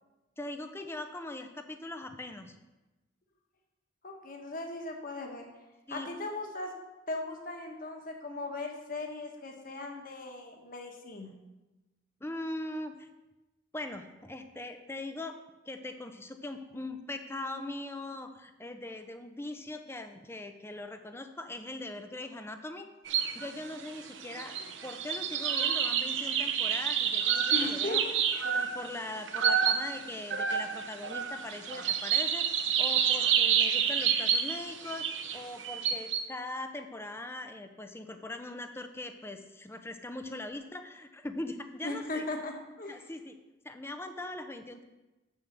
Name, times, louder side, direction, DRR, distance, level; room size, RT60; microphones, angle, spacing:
voice 1, 0.4-2.5 5.9-6.1 12.2-13.1 13.7-15.4 15.7-22.9 23.3-24.6 24.8-28.0 28.4-32.5 32.8-35.1 35.3-42.3 42.9-43.3 43.6-44.8, left 2 dB, 10° left, 7 dB, 0.6 m, -41 dB
voice 2, 4.0-5.5 5.9-6.7 7.1-11.3 27.5-28.1 41.8-43.0, left 2 dB, 45° left, 2 dB, 1.4 m, -38 dB
sound 1, 23.1-23.5 23.8-36.2, right 8 dB, 65° right, 0.8 m, -29 dB
7.3 x 7.2 x 6.7 m, 1.1 s
head